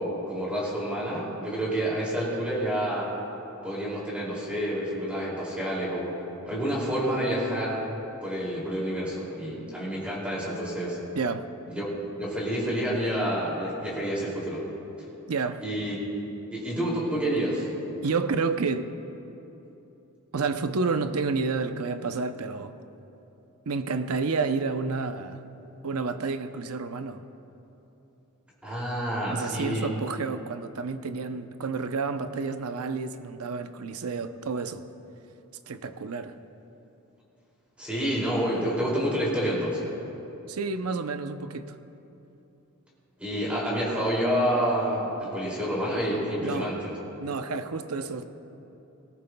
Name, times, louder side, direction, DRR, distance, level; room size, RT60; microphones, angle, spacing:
voice 1, 0.0-3.1 3.6-6.2 6.5-7.9 8.2-11.0 11.7-11.9 12.1-14.6 15.6-15.9 16.5-17.7 28.6-29.9 37.8-39.9 43.2-46.9, equal, 5° right, -6 dB, 2.6 m, -28 dB
voice 2, 11.2-11.5 15.3-15.6 18.0-18.9 20.3-22.7 23.7-25.4 25.8-27.2 29.3-34.8 35.7-36.3 40.5-41.8 46.4-46.8 47.2-48.3, right 4 dB, 75° right, 9 dB, 0.6 m, -30 dB
19.5 x 18.5 x 2.3 m, 3.0 s
head